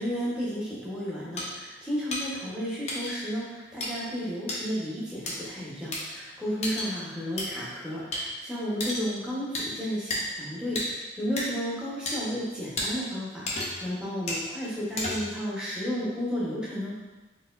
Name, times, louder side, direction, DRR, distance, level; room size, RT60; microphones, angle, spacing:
voice 1, 0.0-16.9, equal, 5° right, -8 dB, 1.0 m, -33 dB
sound 1, 1.4-1.5 2.1-2.2 2.9-3.1 3.8-3.9 4.5-4.6 5.3-5.4 5.9-6.0 6.6-6.9 7.4-7.5 8.1-8.2 8.8-9.1 9.5-9.7 10.1-10.2 10.8-10.9 11.4-11.5 12.1-12.2 12.8-12.9 13.5-13.9 14.3-14.4 15.0-15.4, left 2 dB, 40° left, 0.7 m, -31 dB
4.1 x 3.3 x 2.5 m, 1.1 s
head